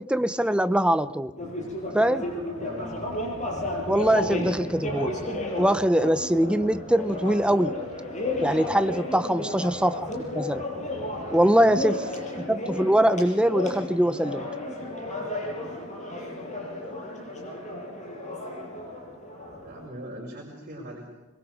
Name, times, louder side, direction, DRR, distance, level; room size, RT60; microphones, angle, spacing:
voice 1, 0.0-1.3 1.9-2.3 3.9-5.1 5.6-7.8 8.4-10.6 11.3-12.0 12.5-14.5, right 1 dB, 5° right, 0.7 m, -23 dB
sound 1, 1.4-19.9, left 1 dB, 35° left, 6.5 m, -33 dB
voice 2, 2.5-3.0 4.2-4.5 9.1-9.5 11.4-11.7 19.6-21.1, right 1 dB, 45° right, 5.3 m, -41 dB
25.5 x 23.0 x 4.9 m
head